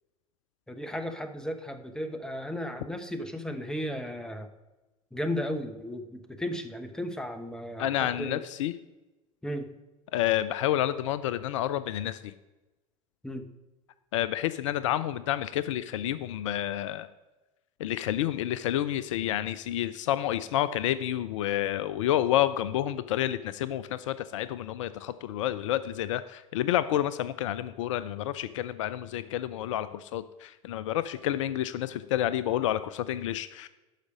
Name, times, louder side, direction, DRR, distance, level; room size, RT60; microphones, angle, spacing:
voice 1, 0.7-4.5 5.1-8.4 9.4-9.7 13.2-13.5, equal, 5° left, 8 dB, 0.9 m, -35 dB
voice 2, 7.8-8.7 10.1-12.3 14.1-17.1 17.8-33.7, left 12 dB, 60° left, 14 dB, 0.4 m, -29 dB
11.5 x 4.9 x 5.1 m, 1.1 s
figure-of-eight pair, 70°, 18 cm